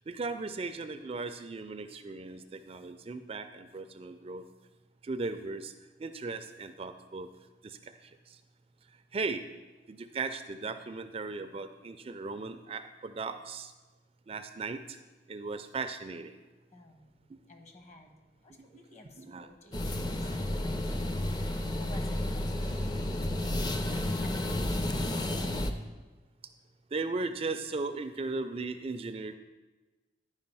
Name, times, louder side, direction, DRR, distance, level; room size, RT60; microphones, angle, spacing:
voice 1, 0.1-4.4 5.0-5.7 6.0-7.3 7.6-8.4 9.1-9.4 9.9-13.7 14.3-15.0 15.3-16.3 17.3-17.5 18.5-18.8 19.2-19.5 20.2-20.3 20.8-21.0 26.9-29.4, right 3 dB, 35° right, 10 dB, 0.4 m, -37 dB
voice 2, 16.7-17.1 17.5-18.1 18.4-21.2 21.7-23.2 23.6-24.6, left 1 dB, 40° left, 4 dB, 1.2 m, -52 dB
sound 1, 19.7-25.7, left 1 dB, 25° left, 0.5 m, -31 dB
10.5 x 4.9 x 5.4 m, 1.2 s
head